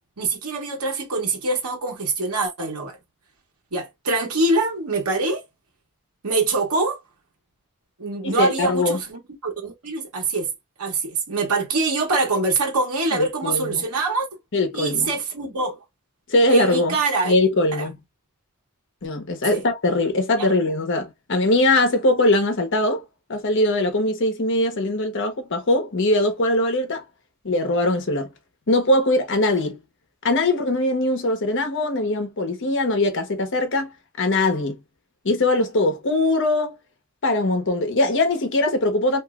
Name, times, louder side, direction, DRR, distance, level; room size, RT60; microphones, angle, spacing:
voice 1, 0.2-3.0 3.7-5.4 6.2-7.0 8.0-10.5 10.8-14.2 14.7-15.8 16.5-17.4 17.7-17.9 19.5-19.6 20.4-20.5, right 3 dB, 90° right, 1.0 m, -24 dB
voice 2, 8.2-9.0 13.1-13.8 14.5-15.1 16.3-17.0 17.2-18.0 19.0-23.0 23.3-27.0 27.4-28.3 28.7-29.8 30.2-33.9 34.2-34.8 35.2-36.8 37.2-39.2, left 2 dB, 55° left, 0.9 m, -21 dB
3.0 x 2.6 x 2.3 m
head